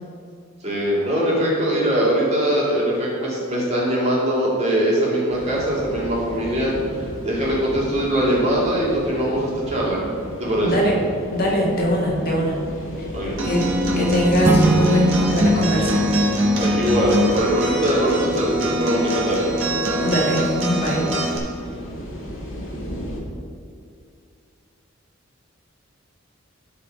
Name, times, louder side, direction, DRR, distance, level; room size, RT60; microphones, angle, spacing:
voice 1, 0.6-10.0 10.3-10.7 13.1-13.4 16.6-19.5, equal, 30° right, -6 dB, 2.3 m, -22 dB
sound 1, 5.3-23.2, equal, 65° left, 2.1 m, -33 dB
voice 2, 10.6-11.0 11.3-12.6 13.0-13.1 13.4-13.6 14.0-16.0 20.0-21.1, equal, 45° left, -3 dB, 1.8 m, -22 dB
Acoustic guitar, 13.4-21.4, equal, 70° right, 1.6 m, -23 dB
sound 2, 14.4-17.2, right 2 dB, 10° right, 0.6 m, -24 dB
12.5 x 4.6 x 5.2 m, 2.3 s
head